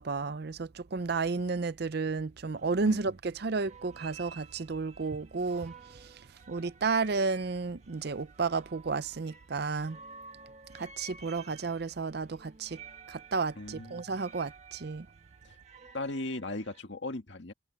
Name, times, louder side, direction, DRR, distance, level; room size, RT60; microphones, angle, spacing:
voice 1, 0.0-10.0 10.7-12.8 13.1-15.1, right 4 dB, 55° right, 0.6 m, -32 dB
sound 1, 0.9-1.0 1.3-1.7 2.6-3.3 3.5-16.8, right 5 dB, 35° right, 1.6 m, -53 dB
voice 2, 13.6-14.0 15.4-15.6 15.9-17.5, left 2 dB, 65° left, 1.9 m, -37 dB
head